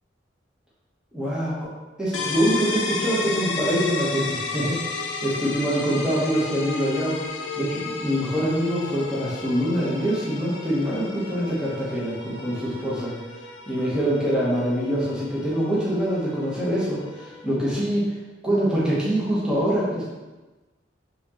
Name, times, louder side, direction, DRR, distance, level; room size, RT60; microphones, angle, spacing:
voice 1, 1.1-1.7 2.0-7.2 7.6-13.1 13.7-18.0 18.4-20.1, equal, 5° right, -9 dB, 1.1 m, -24 dB
sound 1, 2.1-17.7, left 4 dB, 80° left, 0.5 m, -33 dB
4.2 x 3.7 x 2.9 m, 1.2 s
head